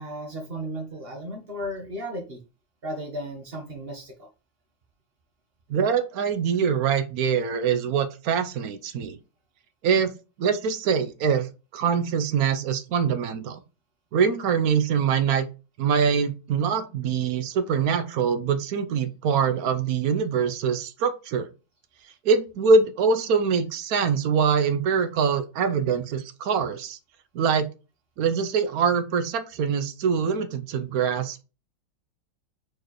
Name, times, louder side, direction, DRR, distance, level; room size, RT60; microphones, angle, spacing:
voice 1, 0.0-2.4 2.8-4.3, equal, 35° right, 1.3 m, -35 dB
voice 2, 5.7-9.2 9.8-10.1 10.4-13.6 14.1-15.5 15.8-21.5 22.2-27.0 27.3-27.7 28.2-31.4, right 6 dB, 70° right, 0.9 m, -24 dB
4.7 x 4.6 x 4.6 m
omnidirectional pair, 2.3 m